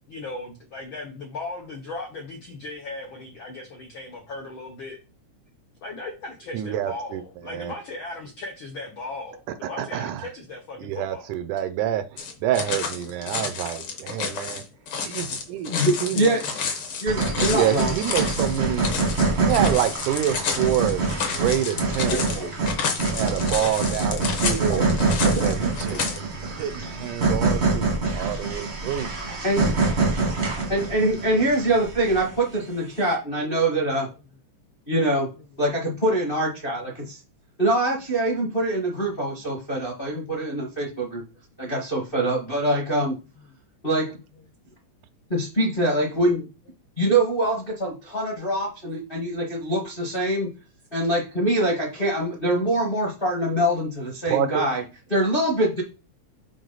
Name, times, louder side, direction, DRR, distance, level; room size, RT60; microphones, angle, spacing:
voice 1, 0.1-5.0 5.8-11.4 15.2-15.3 35.3-35.7 43.4-43.5, left 2 dB, 80° left, 2 dB, 1.1 m, -37 dB
voice 2, 6.5-7.2 7.5-7.7 9.6-10.3 10.8-14.6 15.1-15.7 16.0-16.4 17.5-18.9 19.4-22.1 23.1-24.8 25.2-29.1 29.6-29.7 54.3-54.6, right 11 dB, 80° right, 12 dB, 2.0 m, -27 dB
sound 1, 12.2-26.2, left 5 dB, 60° left, 1.5 m, -30 dB
voice 3, 15.6-16.5 17.0-17.9 22.1-22.7 24.7-25.7 29.4-29.8 30.7-34.1 34.9-35.3 35.6-37.2 37.6-41.2 41.6-43.2 43.8-44.1 45.3-46.5 47.0-50.5 50.9-54.8 55.1-55.8, right 1 dB, 35° left, -1 dB, 0.9 m, -24 dB
sound 2, 17.1-32.5, right 3 dB, 45° right, 0.8 m, -25 dB
6.4 x 4.7 x 3.9 m, 0.31 s
omnidirectional pair, 3.6 m